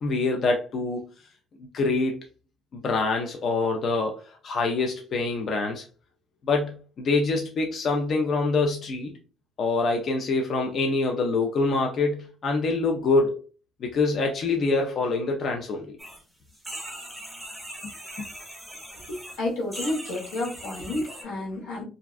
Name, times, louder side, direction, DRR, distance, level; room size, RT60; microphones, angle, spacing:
voice 1, 0.0-1.0 1.6-2.2 2.7-5.8 6.4-9.2 9.6-13.4 13.8-16.0, left 3 dB, 45° left, 2 dB, 0.4 m, -25 dB
sound 1, 16.0-16.2 16.5-19.4 19.7-21.2, right 1 dB, 5° right, 0.6 m, -40 dB
voice 2, 19.1-21.8, left 2 dB, 90° left, -2 dB, 1.1 m, -30 dB
2.5 x 2.1 x 2.4 m, 0.35 s
cardioid pair, 115°, 0 cm